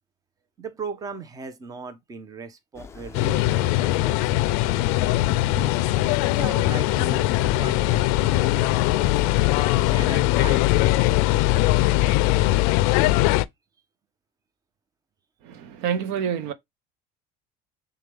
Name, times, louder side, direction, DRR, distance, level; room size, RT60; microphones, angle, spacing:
voice 1, 0.6-5.7 6.3-11.4, right 4 dB, 20° right, 0.7 m, -39 dB
sound 1, 2.7-11.5, left 5 dB, 15° left, 0.4 m, -41 dB
sound 2, 3.1-13.5, left 17 dB, 80° left, 0.4 m, -21 dB
voice 2, 15.4-16.5, right 8 dB, 70° right, 0.7 m, -27 dB
6.5 x 2.3 x 3.3 m
cardioid pair, 140°, 19 cm